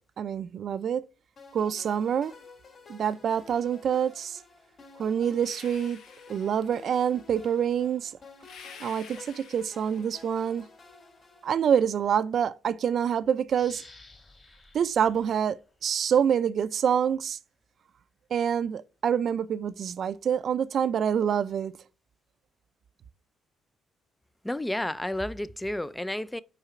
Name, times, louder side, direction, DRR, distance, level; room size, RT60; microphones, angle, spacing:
voice 1, 0.2-1.0 1.5-2.3 2.9-4.4 5.0-6.0 6.3-8.1 8.8-10.6 11.4-13.8 14.7-17.4 18.3-21.7, right 8 dB, 60° right, 0.5 m, -26 dB
sound 1, 1.4-12.0, left 3 dB, 50° left, 2.5 m, -52 dB
sound 2, 5.4-7.0 8.4-10.5, left 6 dB, 80° left, 1.1 m, -50 dB
sound 3, 13.5-16.2 16.7-16.8, left 2 dB, 30° left, 2.8 m, -54 dB
voice 2, 24.4-26.4, left 1 dB, 10° left, 0.4 m, -31 dB
5.8 x 4.8 x 6.6 m
cardioid pair, 90°, 0 cm